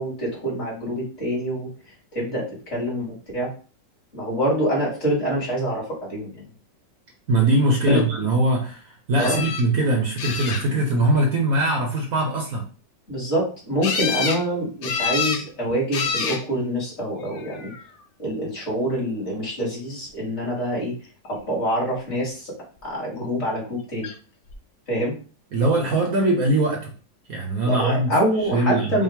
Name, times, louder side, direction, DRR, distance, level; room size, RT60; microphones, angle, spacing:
voice 1, 0.0-1.7 2.1-3.5 4.1-6.4 7.9-8.0 9.2-9.4 13.1-17.7 18.2-20.9 21.3-22.5 22.8-24.1 24.9-25.1 27.6-29.0, equal, 35° left, -5 dB, 2.5 m, -25 dB
voice 2, 7.3-12.6 25.5-26.9 27.3-28.1 28.5-29.0, right 2 dB, 55° right, 0 dB, 1.2 m, -21 dB
sound 1, 9.2-9.6 10.2-10.9 13.8-14.4 14.8-15.4 15.9-16.4 17.3-17.8 24.0-24.1 24.5-24.6, left 6 dB, 65° left, 0.7 m, -27 dB
5.5 x 2.5 x 3.6 m, 0.38 s
omnidirectional pair, 2.0 m